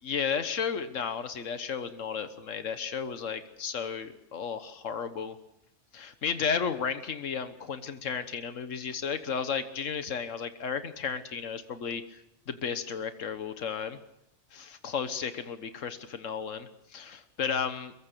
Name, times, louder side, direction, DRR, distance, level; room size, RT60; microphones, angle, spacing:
voice 1, 0.0-5.4 5.9-12.2 12.5-14.0 14.5-17.9, left 6 dB, 80° left, 10 dB, 1.6 m, -33 dB
23.0 x 22.0 x 6.8 m, 0.85 s
omnidirectional pair, 1.3 m